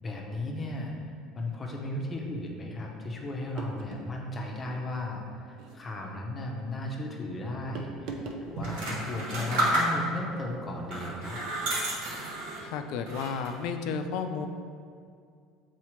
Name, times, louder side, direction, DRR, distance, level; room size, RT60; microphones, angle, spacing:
voice 1, 0.0-0.9 1.3-11.4, left 1 dB, 20° left, 0 dB, 0.7 m, -35 dB
sound 1, 3.6-4.2 5.5-5.8 7.8-8.5, right 3 dB, 55° right, 0.6 m, -39 dB
sound 2, 8.6-10.3 10.9-12.7 13.1-13.7, right 1 dB, 85° right, 1.3 m, -31 dB
voice 2, 12.6-14.5, left 6 dB, 65° left, 7 dB, 0.4 m, -32 dB
7.3 x 4.1 x 3.2 m, 2.3 s
cardioid pair, 155°, 0 cm